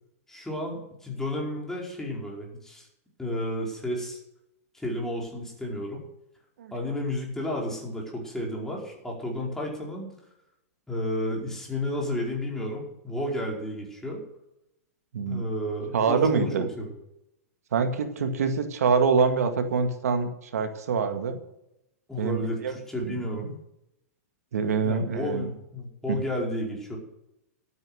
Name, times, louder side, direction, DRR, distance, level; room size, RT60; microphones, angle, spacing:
voice 1, 0.3-2.9 3.2-4.2 4.7-6.0 6.7-10.1 10.9-14.2 15.3-16.9 22.1-23.5 24.8-27.0, left 1 dB, 5° left, -2 dB, 4.9 m, -32 dB
voice 2, 15.1-15.4 15.9-16.7 17.7-21.4 22.2-22.7 23.0-23.6 24.5-25.5 26.1-26.2, right 5 dB, 80° right, 7 dB, 2.1 m, -25 dB
12.5 x 9.5 x 6.4 m, 0.85 s
hypercardioid pair, 125°, 8 cm